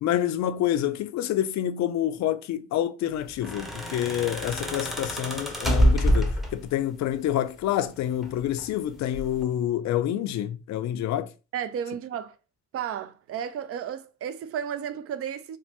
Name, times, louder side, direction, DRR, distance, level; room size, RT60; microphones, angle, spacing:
voice 1, 0.0-11.3, left 11 dB, 65° left, 0.4 m, -27 dB
sound 1, 3.3-6.8 8.0-8.7 9.1-9.4, equal, ahead, 0.6 m, -26 dB
voice 2, 11.5-12.4 12.7-15.6, right 8 dB, 50° right, 0.4 m, -33 dB
3.1 x 2.0 x 2.9 m
cardioid pair, 90°, 30 cm